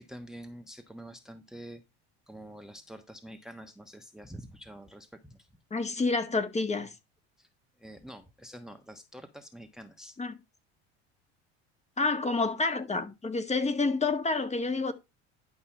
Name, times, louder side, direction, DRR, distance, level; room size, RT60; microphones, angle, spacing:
voice 1, 0.0-1.8 2.3-5.5 7.4-7.5 7.8-10.2, right 1 dB, ahead, 1.2 m, -47 dB
voice 2, 5.7-6.9 10.2-10.4 12.0-14.9, left 3 dB, 20° left, 1.8 m, -28 dB
11.0 x 5.5 x 4.4 m
supercardioid pair, 90°, 32 cm